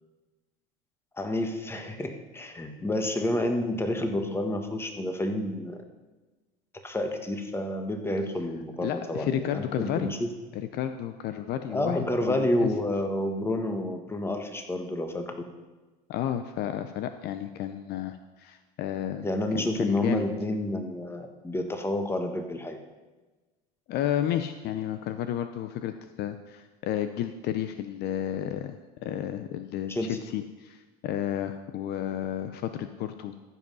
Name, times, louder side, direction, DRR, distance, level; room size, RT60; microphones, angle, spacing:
voice 1, 1.2-5.8 6.8-10.3 11.7-15.2 19.2-22.8 29.9-30.2, left 1 dB, 10° left, 5 dB, 1.5 m, -29 dB
voice 2, 8.8-10.1 10.5-12.0 12.2-12.7 16.1-19.2 19.5-20.3 23.9-33.3, left 10 dB, 55° left, 9 dB, 0.7 m, -32 dB
14.5 x 5.6 x 5.5 m, 1.2 s
hypercardioid pair, 90°, 20 cm